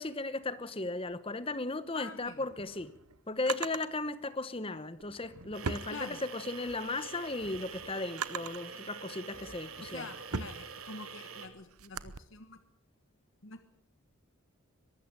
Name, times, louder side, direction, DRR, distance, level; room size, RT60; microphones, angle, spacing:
voice 1, 0.0-2.9 3.3-10.1, left 2 dB, 25° left, 1.0 m, -36 dB
voice 2, 1.9-2.4 5.9-6.2 9.8-12.6 13.4-13.7, left 3 dB, 60° left, 1.3 m, -46 dB
Drawer open or close, 2.3-3.9 4.9-6.6 7.0-8.7 9.4-12.2, right 5 dB, 90° right, 1.0 m, -41 dB
sound 1, 5.5-11.5, right 6 dB, 75° right, 2.9 m, -46 dB
22.5 x 13.5 x 8.9 m
head